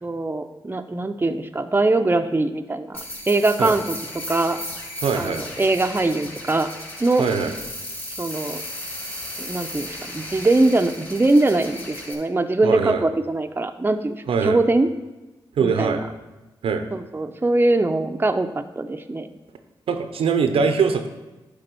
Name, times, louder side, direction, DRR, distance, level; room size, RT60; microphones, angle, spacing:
voice 1, 0.0-3.0 3.3-4.0 4.3-4.6 5.2-6.7 7.0-7.3 8.2-8.6 9.4-14.2 14.4-14.9 15.6-16.0 16.9-19.3, right 2 dB, 20° right, 7 dB, 0.6 m, -22 dB
sound 1, 2.9-12.1, left 1 dB, 20° left, 2.9 m, -35 dB
voice 2, 5.0-5.4 7.2-7.5 12.6-13.0 14.3-14.6 15.6-16.0 16.6-16.8 19.9-21.1, right 5 dB, 85° right, 7 dB, 0.7 m, -22 dB
10.0 x 3.5 x 6.8 m, 1.1 s
cardioid pair, 50°, 9 cm